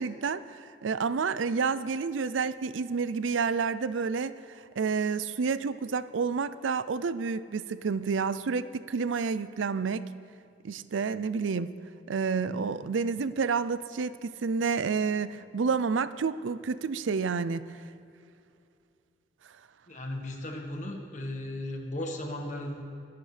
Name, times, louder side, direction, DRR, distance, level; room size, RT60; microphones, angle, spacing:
voice 1, 0.0-4.4 4.8-10.1 10.6-11.7 12.1-17.6, right 5 dB, 90° right, 15 dB, 0.5 m, -29 dB
voice 2, 19.9-22.8, left 1 dB, 40° left, 2 dB, 1.6 m, -36 dB
23.0 x 11.5 x 3.4 m, 2.5 s
head